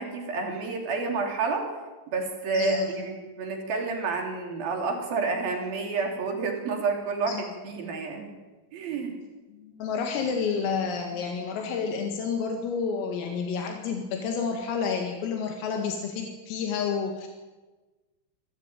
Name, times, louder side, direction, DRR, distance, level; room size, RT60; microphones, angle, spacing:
voice 1, 0.0-1.7 2.1-8.3 8.7-9.1, right 4 dB, 50° right, 2 dB, 4.7 m, -29 dB
voice 2, 2.5-2.9 7.3-7.4 9.6-17.3, left 5 dB, 85° left, 3 dB, 4.6 m, -30 dB
27.5 x 14.5 x 9.1 m, 1.2 s
omnidirectional pair, 5.9 m